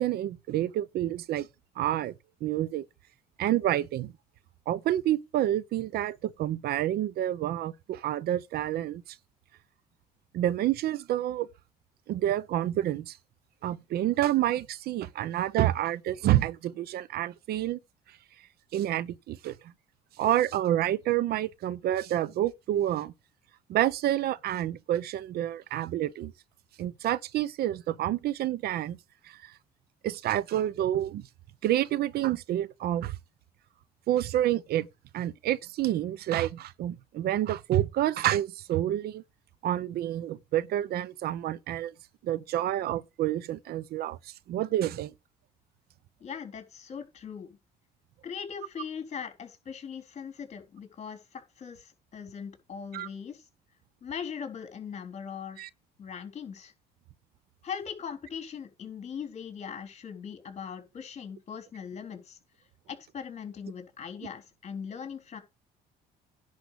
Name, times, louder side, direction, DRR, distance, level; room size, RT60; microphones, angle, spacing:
voice 1, 0.0-1.5 1.8-2.1 2.4-2.8 3.4-4.1 4.7-9.0 10.3-11.5 12.1-13.2 13.6-17.8 18.7-19.5 20.2-23.1 23.7-26.3 26.8-29.0 29.2-29.5 30.0-31.2 31.6-33.1 34.1-34.9 35.1-39.2 39.6-41.9 42.2-44.2 44.5-45.1 52.9-53.1 55.6-55.7, right 13 dB, 70° right, 0.7 m, -28 dB
voice 2, 46.2-47.6 48.2-53.5 54.0-55.7 56.0-56.7 57.6-62.4 62.9-65.4, left 7 dB, 40° left, 3.6 m, -40 dB
10.5 x 4.9 x 6.7 m
cardioid pair, 110°, 17 cm